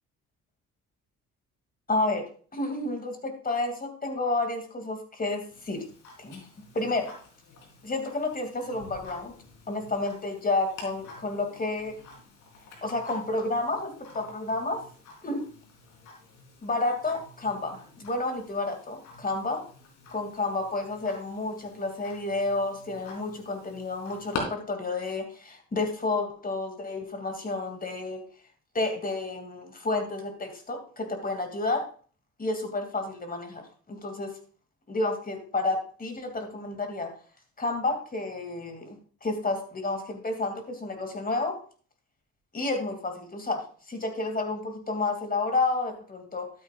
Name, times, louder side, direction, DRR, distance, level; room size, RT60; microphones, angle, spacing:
voice 1, 1.9-5.8 6.2-6.5 6.7-7.2 7.8-9.3 9.7-12.0 12.8-14.9 15.2-15.5 16.6-19.6 20.1-28.2 28.7-31.9 32.4-34.3 34.9-37.1 37.6-41.6 42.5-46.5, left 2 dB, 30° left, 6 dB, 2.6 m, -30 dB
Tick-tock, 5.5-24.4, left 4 dB, 90° left, 3.8 m, -47 dB
12.5 x 9.4 x 2.5 m, 0.41 s
cardioid pair, 90°, 30 cm